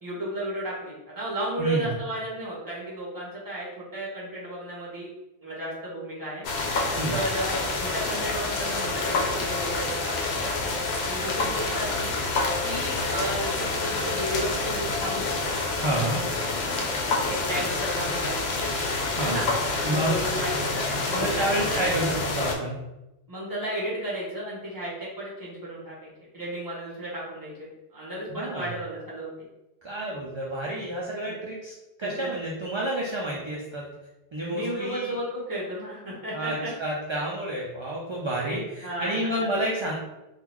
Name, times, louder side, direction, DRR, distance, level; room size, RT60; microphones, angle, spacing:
voice 1, 0.0-5.1 5.4-6.4 7.1-10.5 11.0-12.1 12.6-15.3 17.2-18.6 19.2-19.5 19.9-22.2 23.3-29.3 31.2-31.3 32.0-32.3 34.5-36.7 38.5-38.6 38.8-39.5, right 1 dB, 20° right, -6 dB, 1.2 m, -33 dB
voice 2, 1.6-1.9 7.0-7.2 15.8-16.2 19.2-19.4 19.8-20.2 21.1-22.8 28.3-28.7 29.8-31.7 32.0-33.9 34.3-35.1 36.3-39.9, right 1 dB, 40° right, -3 dB, 0.4 m, -29 dB
sound 1, 6.4-22.6, left 3 dB, 80° left, 0.8 m, -28 dB
3.7 x 2.4 x 3.0 m, 0.99 s
omnidirectional pair, 1.1 m